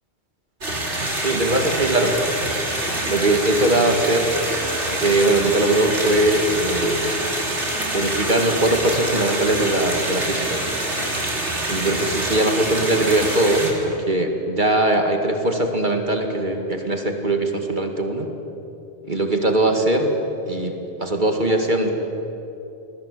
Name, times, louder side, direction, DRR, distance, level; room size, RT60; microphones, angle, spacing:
sound 1, 0.6-13.7, right 1 dB, 90° right, 4.1 m, -25 dB
voice 1, 1.2-2.2 3.0-4.3 4.9-7.1 7.9-10.6 11.7-18.3 19.1-20.1 20.5-21.9, right 1 dB, 45° right, 4 dB, 2.3 m, -21 dB
28.0 x 21.5 x 8.4 m, 2.9 s
omnidirectional pair, 1.2 m